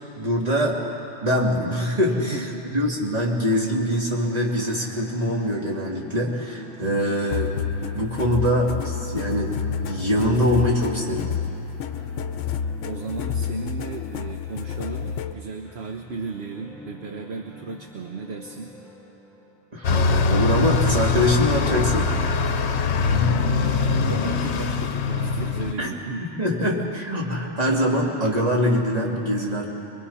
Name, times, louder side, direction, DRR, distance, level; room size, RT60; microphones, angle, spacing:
voice 1, 0.2-0.8 1.2-7.5 7.9-9.6 9.9-11.3 19.7-22.1 25.8-25.9 26.4-29.7, equal, 30° right, -3 dB, 2.8 m, -23 dB
voice 2, 2.1-2.8 12.8-18.8 23.4-26.3, right 4 dB, 60° right, 4 dB, 1.1 m, -35 dB
sound 1, 4.1-20.8, left 2 dB, 10° left, 4.1 m, -46 dB
sound 2, 7.3-15.4, left 7 dB, 85° left, 1.0 m, -29 dB
Bus, 19.8-25.7, left 4 dB, 65° left, 1.1 m, -22 dB
24.0 x 23.0 x 5.6 m, 3.0 s
omnidirectional pair, 1.2 m